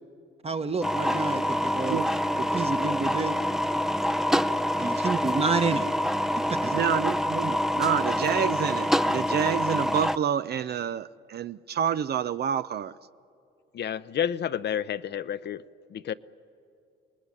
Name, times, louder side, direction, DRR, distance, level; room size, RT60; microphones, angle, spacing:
voice 1, 0.4-2.0 2.5-3.4 4.8-5.9 6.6-6.8, right 4 dB, 30° right, 9 dB, 1.3 m, -29 dB
sound 1, 0.8-10.2, equal, ahead, 0.6 m, -26 dB
voice 2, 6.7-12.9, right 9 dB, 55° right, 14 dB, 0.6 m, -28 dB
voice 3, 13.7-15.6 15.9-16.1, left 9 dB, 60° left, 13 dB, 0.7 m, -30 dB
27.0 x 20.0 x 9.9 m, 2.5 s
cardioid pair, 90°, 20 cm